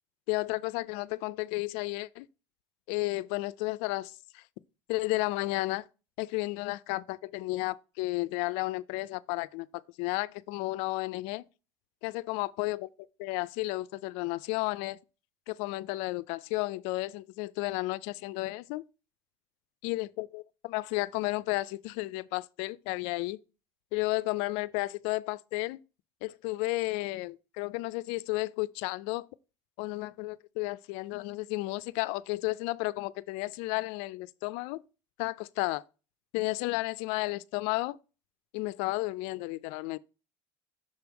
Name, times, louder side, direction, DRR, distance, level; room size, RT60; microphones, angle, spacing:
voice 1, 0.3-2.3 2.9-4.4 4.9-5.8 6.2-11.4 12.0-12.9 13.2-15.0 15.5-18.8 19.8-23.4 23.9-25.8 26.2-29.3 29.8-34.8 35.2-35.8 36.3-38.0 38.5-40.0, left 21 dB, 75° left, 0.4 m, -33 dB
6.6 x 3.5 x 4.5 m
supercardioid pair, 110°, 10 cm